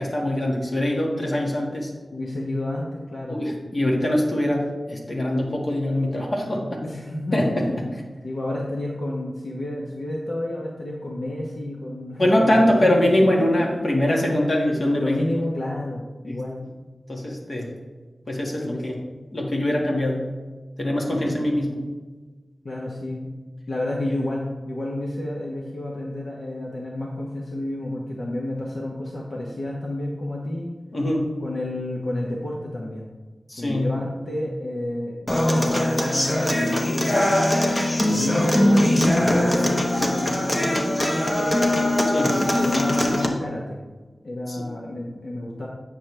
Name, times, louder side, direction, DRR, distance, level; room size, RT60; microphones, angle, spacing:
voice 1, 0.0-1.9 3.3-6.6 7.3-7.6 12.2-15.1 16.3-16.4 17.1-17.7 18.3-18.9 19.3-20.2 20.8-21.8 30.9-31.3 33.5-34.0 42.1-42.3 44.6-44.7, left 1 dB, 50° left, -1 dB, 1.7 m, -23 dB
voice 2, 2.1-3.4 6.8-7.9 8.2-14.3 14.9-16.6 18.6-18.8 22.6-23.3 23.7-30.7 31.4-33.1 33.6-37.3 38.1-41.6 42.3-43.9 44.2-45.7, left 1 dB, 70° left, -4 dB, 1.1 m, -30 dB
Human voice / Acoustic guitar, 35.3-43.3, left 1 dB, 25° left, 1.0 m, -21 dB
8.9 x 6.7 x 3.3 m, 1.3 s
wide cardioid pair, 85°, 0 cm